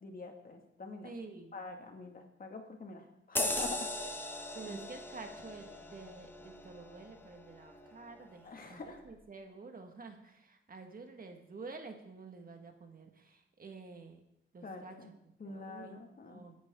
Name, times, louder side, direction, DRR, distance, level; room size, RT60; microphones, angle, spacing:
voice 1, 0.0-1.1 1.5-4.2 4.7-4.8 8.4-9.0 14.6-15.1 15.4-16.4, left 3 dB, 45° left, 3 dB, 2.2 m, -45 dB
voice 2, 1.0-1.5 4.6-14.2 14.5-14.9 15.2-16.0 16.2-16.6, right 4 dB, 45° right, 5 dB, 1.8 m, -49 dB
sound 1, 3.4-8.3 8.7-8.9, left 1 dB, 10° left, 1.4 m, -40 dB
27.0 x 10.5 x 3.8 m, 0.82 s
wide cardioid pair, 140°, 20 cm